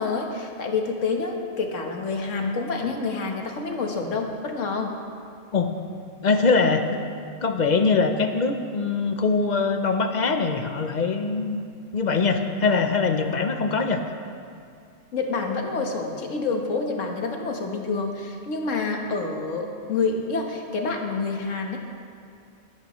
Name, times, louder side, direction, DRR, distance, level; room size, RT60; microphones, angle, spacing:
voice 1, 0.0-4.9 15.1-21.8, left 4 dB, 70° left, 2 dB, 1.6 m, -28 dB
voice 2, 6.2-6.9 7.4-11.6 11.9-14.0, left 4 dB, 45° left, 6 dB, 0.7 m, -22 dB
21.5 x 9.6 x 3.1 m, 2.4 s
omnidirectional pair, 1.3 m